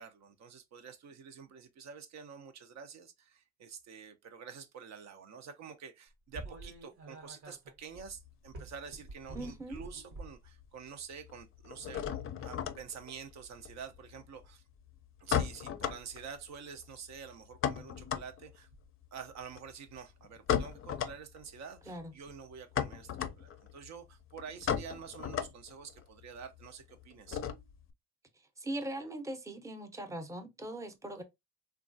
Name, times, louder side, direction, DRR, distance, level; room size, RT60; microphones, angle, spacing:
voice 1, 0.0-14.6 15.2-18.7 19.1-27.4, right 6 dB, 65° right, 0.5 m, -48 dB
sound 1, 6.3-10.5 11.2-11.5 13.3-13.6 15.4-15.5 16.0-16.4 16.8-17.1 18.5-18.9 20.5-20.7 22.2-22.3 23.8-23.9 24.6-24.7, right 2 dB, 85° right, 1.1 m, -48 dB
sound 2, 8.0-9.7 9.9-10.6 10.9-27.9, left 9 dB, 45° left, 0.4 m, -37 dB
voice 2, 9.3-9.8 21.9-22.1 28.6-31.2, right 1 dB, 10° right, 0.6 m, -40 dB
3.0 x 2.3 x 2.5 m
cardioid pair, 90°, 30 cm